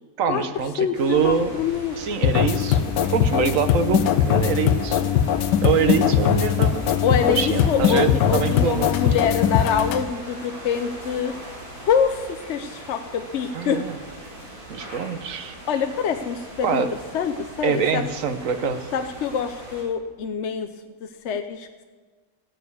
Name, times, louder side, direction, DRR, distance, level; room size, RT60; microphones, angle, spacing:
voice 1, 0.2-1.5 2.0-5.1 5.6-6.8 7.1-8.9 13.5-14.0 14.7-15.5 16.6-16.9 17.6-18.9, right 6 dB, 55° right, 9 dB, 1.1 m, -24 dB
voice 2, 0.8-2.0 7.0-8.0 8.3-11.3 11.8-13.8 14.8-14.9 15.7-16.8 17.1-18.1 18.9-21.8, left 7 dB, 60° left, 7 dB, 0.7 m, -25 dB
sound 1, 0.9-19.8, right 1 dB, 75° right, 5.0 m, -40 dB
sound 2, 2.2-10.0, left 9 dB, 90° left, 1.2 m, -21 dB
15.5 x 6.6 x 8.4 m, 1.4 s
omnidirectional pair, 1.8 m